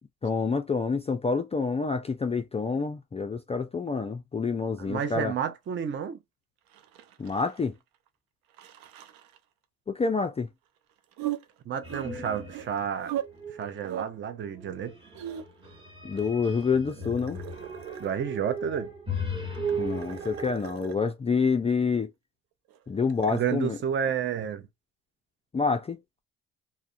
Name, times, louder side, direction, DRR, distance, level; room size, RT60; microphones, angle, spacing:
voice 1, 0.2-5.3 7.2-7.8 9.9-10.5 16.0-17.4 19.8-22.1 22.9-23.8 25.5-26.0, left 5 dB, 20° left, 0.3 m, -27 dB
voice 2, 4.8-6.2 11.7-13.1 13.6-14.9 18.0-18.9 23.3-24.7, right 8 dB, 35° right, 0.5 m, -30 dB
sound 1, 6.7-7.8 8.1-8.2 8.5-9.4 11.1-13.2 13.5-14.1 14.8-15.7 16.2-18.4 19.4-21.0 22.7-23.4, right 12 dB, 85° right, 0.5 m, -39 dB
sound 2, 11.8-12.9 13.2-13.8 14.5-20.5, right 1 dB, 15° right, 1.1 m, -36 dB
2.3 x 2.1 x 2.6 m
cardioid pair, 80°, 34 cm